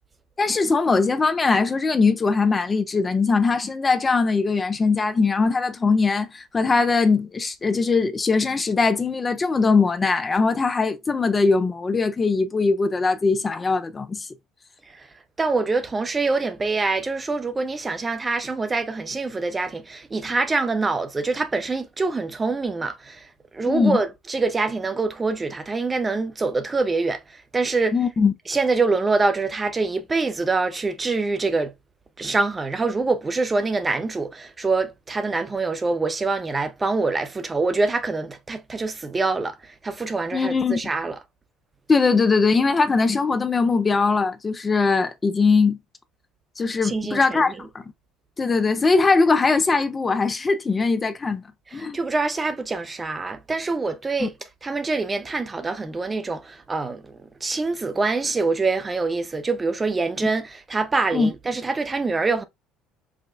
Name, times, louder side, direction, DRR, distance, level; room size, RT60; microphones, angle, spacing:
voice 1, 0.4-14.3 23.7-24.0 27.9-28.3 40.3-40.8 41.9-45.8 46.6-47.7 48.4-51.4 51.7-52.0 54.2-54.3 61.1-61.3, left 4 dB, 25° left, 0.4 m, -21 dB
voice 2, 15.4-23.2 23.5-27.2 27.5-28.0 28.5-31.7 32.2-39.6 39.8-41.2 46.8-47.4 51.7-54.3 54.6-57.0 57.4-62.4, right 3 dB, 25° right, 0.6 m, -25 dB
4.9 x 2.1 x 2.4 m
figure-of-eight pair, 60°, 0 cm